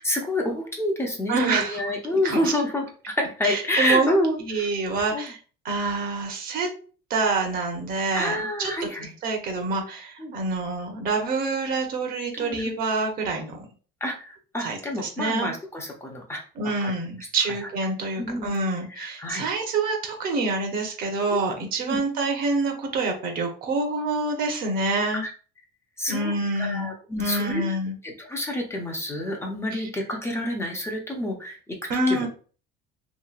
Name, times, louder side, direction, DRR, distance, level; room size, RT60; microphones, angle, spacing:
voice 1, 0.0-4.7 5.1-5.3 8.1-9.1 10.2-10.3 12.3-12.7 14.0-16.4 16.8-17.3 17.6-17.7 18.2-18.5 18.9-19.5 21.8-22.0 25.1-25.3 26.0-27.6 28.0-32.3, left 1 dB, 15° left, 1 dB, 0.5 m, -28 dB
voice 2, 1.3-1.8 2.2-2.4 3.4-4.1 4.5-5.4 5.6-6.7 7.1-8.7 9.2-13.6 14.6-15.5 16.6-25.2 26.1-28.0 29.7-29.8 31.9-32.3, right 3 dB, 55° right, 3 dB, 0.8 m, -26 dB
2.9 x 2.7 x 2.4 m, 0.39 s
cardioid pair, 140°, 18 cm